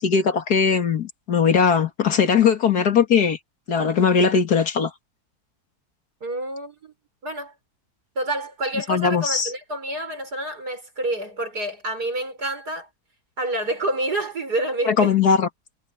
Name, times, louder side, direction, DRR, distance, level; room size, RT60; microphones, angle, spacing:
voice 1, 0.0-3.4 3.7-4.9 8.9-9.5 14.9-15.5, left 6 dB, 80° left, 2.5 m, -19 dB
voice 2, 6.2-6.9 7.2-7.5 8.2-12.9 13.4-15.1, right 1 dB, 90° right, 7.3 m, -28 dB
omnidirectional pair, 1.7 m